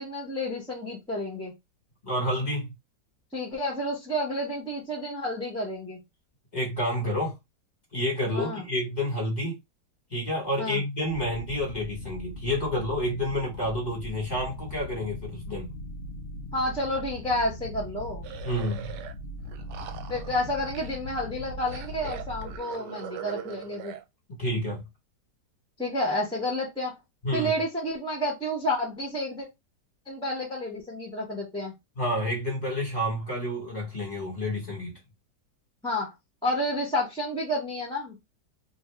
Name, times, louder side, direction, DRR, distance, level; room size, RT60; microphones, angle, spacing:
voice 1, 0.0-1.5 3.3-6.0 8.3-8.7 10.6-10.8 16.5-18.2 20.1-23.9 25.8-26.9 27.3-29.5 30.1-31.7 35.8-36.1 36.4-38.2, left 1 dB, 5° left, 0.8 m, -30 dB
voice 2, 2.0-2.7 6.5-7.3 7.9-9.5 10.1-15.7 18.4-18.9 24.4-24.8 27.2-27.5 32.0-34.9, left 1 dB, 25° left, 1.5 m, -29 dB
sound 1, 11.1-22.6, left 1 dB, 60° left, 0.8 m, -40 dB
sound 2, 18.2-19.1 19.4-21.2 21.7-24.0, right 10 dB, 80° right, 1.2 m, -41 dB
2.8 x 2.6 x 3.4 m
omnidirectional pair, 1.8 m